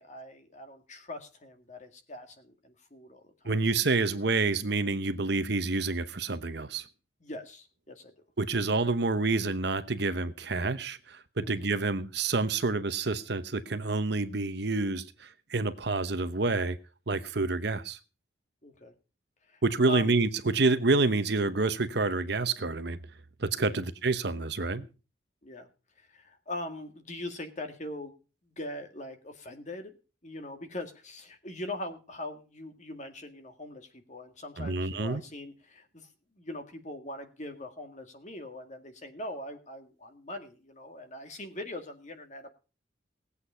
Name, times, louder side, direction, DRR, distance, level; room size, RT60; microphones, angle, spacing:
voice 1, 0.0-3.3 7.2-8.1 11.4-11.7 18.6-18.9 19.5-20.1 23.7-23.8 25.4-25.7 26.0-28.2 28.4-29.9 30.2-36.1 36.4-42.5, left 1 dB, 35° left, 7 dB, 2.0 m, -41 dB
voice 2, 3.4-6.8 8.4-16.8 17.1-18.0 19.6-23.0 23.4-24.9 34.6-35.2, right 3 dB, 55° right, 12 dB, 0.9 m, -28 dB
18.0 x 8.3 x 5.6 m, 0.35 s
head